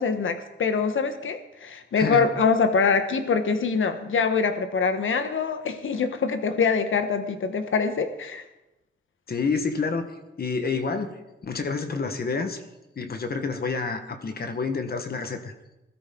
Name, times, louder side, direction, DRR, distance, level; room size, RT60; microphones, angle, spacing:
voice 1, 0.0-8.4, left 5 dB, 75° left, 8 dB, 1.3 m, -24 dB
voice 2, 1.9-2.3 9.3-10.1 10.4-11.1 11.4-12.6 13.0-15.5, left 4 dB, 50° left, 7 dB, 1.5 m, -28 dB
20.5 x 13.0 x 3.9 m, 0.96 s
wide cardioid pair, 115°, 21 cm